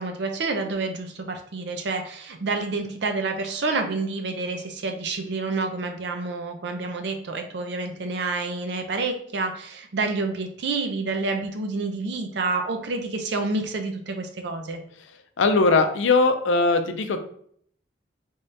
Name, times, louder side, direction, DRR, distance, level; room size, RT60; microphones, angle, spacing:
voice 1, 0.0-14.8, right 3 dB, 65° right, 5 dB, 0.6 m, -28 dB
voice 2, 15.4-17.2, left 3 dB, 85° left, 8 dB, 0.5 m, -20 dB
3.5 x 2.7 x 3.3 m, 0.63 s
head